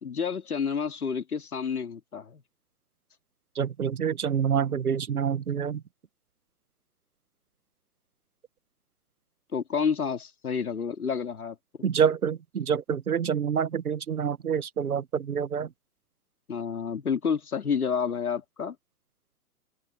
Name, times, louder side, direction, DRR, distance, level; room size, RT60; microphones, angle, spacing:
voice 1, 0.0-2.4 9.5-11.5 16.5-18.7, left 6 dB, 75° left, 3.1 m, -29 dB
voice 2, 3.5-5.8 11.8-15.7, right 7 dB, 75° right, 1.3 m, -27 dB
open air
figure-of-eight pair, 120°, 44 cm